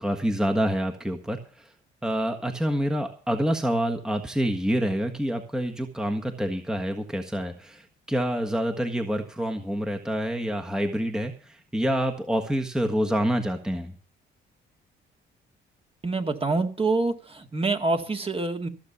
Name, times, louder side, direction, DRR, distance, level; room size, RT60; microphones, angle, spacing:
voice 1, 0.0-1.7 2.0-13.9, equal, 5° right, 4 dB, 1.5 m, -27 dB
voice 2, 16.0-18.7, right 3 dB, 30° right, 5 dB, 2.1 m, -26 dB
15.0 x 7.3 x 6.9 m, 0.40 s
cardioid pair, 90°, 20 cm